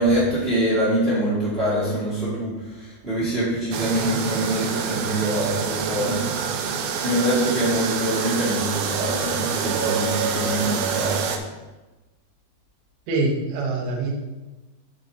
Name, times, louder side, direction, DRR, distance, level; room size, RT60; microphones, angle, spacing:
voice 1, 0.0-6.2 7.0-11.2, right 1 dB, 20° right, -8 dB, 1.9 m, -24 dB
sound 1, 3.7-11.4, right 6 dB, 80° right, 2.2 m, -27 dB
voice 2, 13.1-14.2, right 3 dB, 65° right, -2 dB, 2.1 m, -24 dB
9.1 x 6.6 x 2.8 m, 1.1 s
omnidirectional pair, 3.9 m